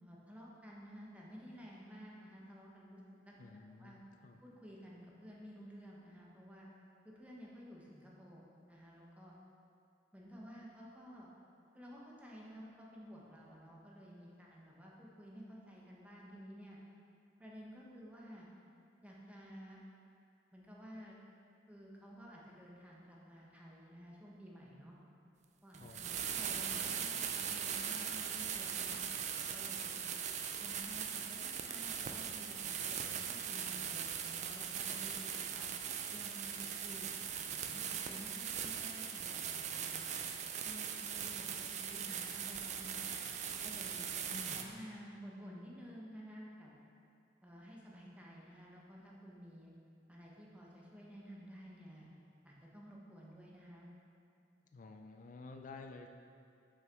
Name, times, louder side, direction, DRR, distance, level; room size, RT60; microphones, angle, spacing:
voice 1, 0.0-4.0 4.4-6.7 7.0-9.3 10.1-11.3 11.7-16.8 17.4-18.5 19.0-19.8 20.5-21.2 21.7-24.9 25.6-30.1 30.6-35.7 36.1-37.1 37.5-40.1 40.6-43.3 43.6-44.1 44.5-46.7 47.4-49.7 50.1-52.1 52.4-53.9, equal, 10° right, -4 dB, 0.9 m, -53 dB
voice 2, 3.4-4.4 25.8-26.9 44.3-44.9 54.7-56.1, left 3 dB, 45° left, 4 dB, 0.4 m, -52 dB
sound 1, 25.7-44.6, right 8 dB, 40° right, 0.4 m, -40 dB
6.3 x 5.9 x 3.5 m, 2.6 s
head